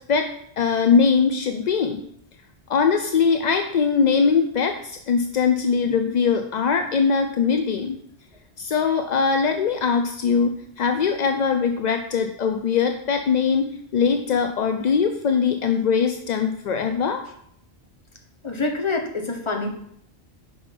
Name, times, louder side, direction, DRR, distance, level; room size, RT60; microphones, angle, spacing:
voice 1, 0.6-2.0 2.7-8.0 8.6-17.2, left 6 dB, 60° left, 6 dB, 0.5 m, -21 dB
voice 2, 18.4-19.7, left 3 dB, 30° left, 2 dB, 1.0 m, -26 dB
5.9 x 5.3 x 5.1 m, 0.70 s
omnidirectional pair, 1.2 m